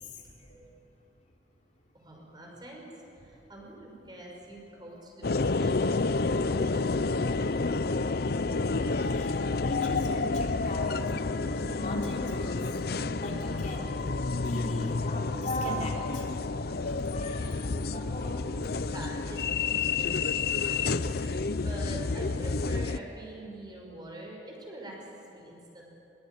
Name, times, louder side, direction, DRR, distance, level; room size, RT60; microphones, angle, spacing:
voice 1, 2.0-2.9 3.1-7.9 18.9-25.0 25.3-25.9, right 1 dB, 25° right, -1 dB, 5.9 m, -45 dB
sound 1, 5.2-23.0, left 3 dB, 60° left, 0.6 m, -29 dB
voice 2, 8.5-12.6 13.1-14.0 14.4-16.2 16.6-18.6, equal, 45° left, -1 dB, 3.4 m, -40 dB
22.5 x 22.0 x 9.4 m, 2.9 s
head